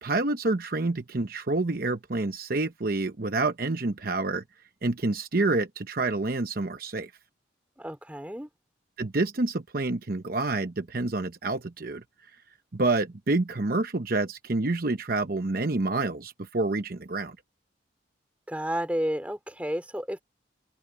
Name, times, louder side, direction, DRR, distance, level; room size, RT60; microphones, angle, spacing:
voice 1, 0.0-4.4 4.8-7.1 9.0-12.0 12.7-17.4, right 2 dB, 50° right, 0.9 m, -28 dB
voice 2, 7.8-8.5 18.5-20.2, equal, 10° right, 3.4 m, -31 dB
open air
head